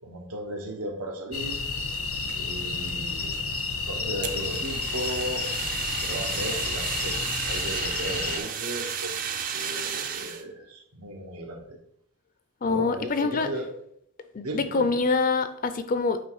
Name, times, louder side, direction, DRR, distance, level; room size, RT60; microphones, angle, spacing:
voice 1, 0.0-1.6 2.3-3.4 3.9-5.4 6.0-7.2 7.5-9.2 9.5-11.8 12.6-13.6 14.4-14.9, right 1 dB, 85° right, 1 dB, 1.4 m, -35 dB
sound 1, 1.3-8.4, left 4 dB, 70° left, 0.8 m, -31 dB
Fire, 4.2-10.4, right 7 dB, 40° right, 0.5 m, -33 dB
voice 2, 12.6-13.5 14.3-16.2, left 4 dB, 40° left, 10 dB, 0.5 m, -25 dB
8.4 x 3.3 x 4.8 m, 0.72 s
head